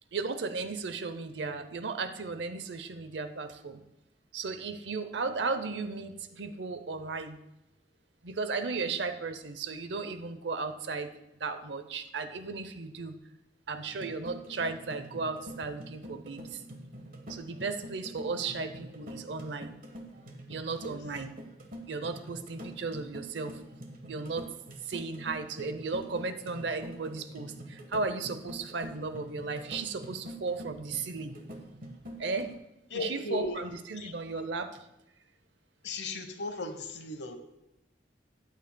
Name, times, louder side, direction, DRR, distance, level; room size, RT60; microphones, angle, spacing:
voice 1, 0.1-3.8 4.3-7.4 8.2-11.1 11.4-13.1 13.7-16.6 17.3-19.7 20.5-21.4 21.9-23.6 24.0-24.5 24.9-31.4 32.2-32.5 32.9-34.8, right 4 dB, 80° right, 10 dB, 0.7 m, -35 dB
sound 1, 13.9-32.6, right 1 dB, 55° right, 1.3 m, -45 dB
voice 2, 32.9-33.6 34.0-34.1 35.8-37.4, left 2 dB, 70° left, 8 dB, 1.0 m, -36 dB
13.5 x 9.2 x 2.2 m, 0.89 s
head